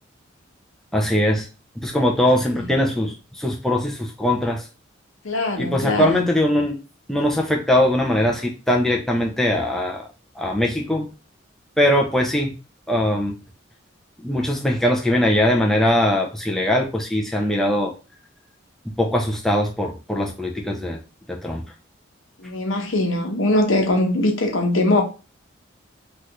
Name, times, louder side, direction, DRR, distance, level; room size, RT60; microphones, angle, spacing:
voice 1, 0.9-1.5 1.8-4.6 5.6-6.8 7.1-10.1 10.4-11.1 11.8-12.5 12.9-13.4 14.2-17.9 19.0-21.0 21.3-21.6, left 1 dB, ahead, 0.4 m, -21 dB
voice 2, 5.2-6.3 22.4-25.0, left 1 dB, 85° left, 0.9 m, -21 dB
3.2 x 2.4 x 2.9 m
head